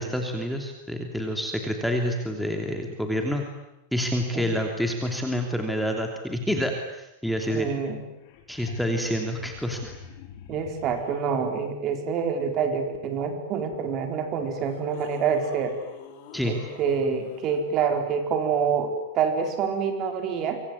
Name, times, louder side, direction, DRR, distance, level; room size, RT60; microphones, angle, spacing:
voice 1, 0.0-3.5 3.9-7.7 8.5-9.9 16.3-16.5, equal, ahead, 3 dB, 3.0 m, -28 dB
voice 2, 7.5-8.0 10.5-15.8 16.5-20.6, right 6 dB, 35° right, 6 dB, 4.7 m, -27 dB
sound 1, 7.8-7.9 8.1-11.2 13.7-13.8 14.5-17.6 20.1-20.2, left 8 dB, 55° left, 6.4 m, -46 dB
25.0 x 25.0 x 9.7 m, 0.88 s
supercardioid pair, 150°, 0 cm